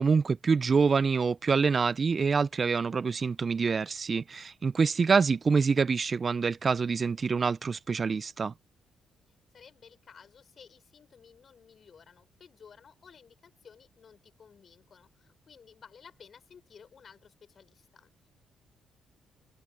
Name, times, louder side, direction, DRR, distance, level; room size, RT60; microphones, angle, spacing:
voice 1, 0.0-8.5, right 5 dB, 45° right, 0.8 m, -26 dB
voice 2, 9.5-18.3, left 6 dB, 50° left, 6.6 m, -55 dB
open air
hypercardioid pair, 45°, 0 cm